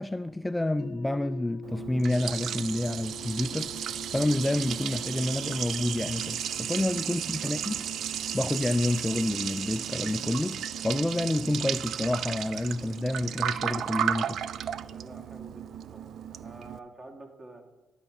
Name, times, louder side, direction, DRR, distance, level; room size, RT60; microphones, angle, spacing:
voice 1, 0.0-7.8 8.3-14.4, left 1 dB, 10° left, 0.3 m, -29 dB
sound 1, 0.8-12.7, left 7 dB, 75° left, 0.7 m, -48 dB
Liquid, 1.6-16.8, right 9 dB, 70° right, 0.4 m, -34 dB
voice 2, 7.0-7.6 14.8-17.7, right 2 dB, 30° right, 1.9 m, -49 dB
13.0 x 5.0 x 8.1 m
cardioid pair, 90°, 0 cm